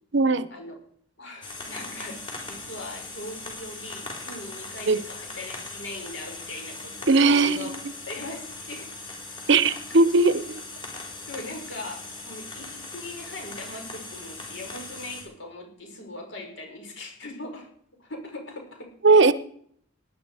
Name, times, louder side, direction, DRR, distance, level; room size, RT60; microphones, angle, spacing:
voice 1, 0.1-0.5 4.9-5.0 7.1-7.7 9.5-10.6 19.0-19.3, right 3 dB, 60° right, 15 dB, 0.8 m, -19 dB
voice 2, 1.2-2.2 2.5-7.7 8.1-8.9 9.5-10.0 11.0-17.7 18.0-18.9, left 2 dB, 65° left, 2 dB, 5.5 m, -40 dB
sound 1, 1.4-15.2, left 3 dB, 25° left, 4.4 m, -39 dB
18.5 x 11.0 x 4.9 m, 0.62 s
head